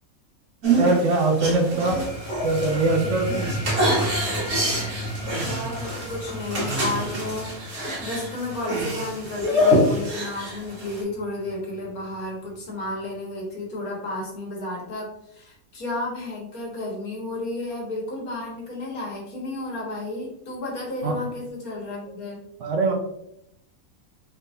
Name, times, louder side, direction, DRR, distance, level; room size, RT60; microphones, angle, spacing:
sound 1, 0.6-11.0, equal, 85° right, 2.2 m, -26 dB
voice 1, 0.8-2.0 2.4-3.3 21.0-21.2 22.6-22.9, right 2 dB, 65° right, 3 dB, 0.9 m, -22 dB
sound 2, 1.7-12.8, equal, 25° right, 1.3 m, -35 dB
voice 2, 5.3-22.4, left 2 dB, 75° left, -2 dB, 1.8 m, -32 dB
4.4 x 3.6 x 2.6 m, 0.78 s
omnidirectional pair, 1.5 m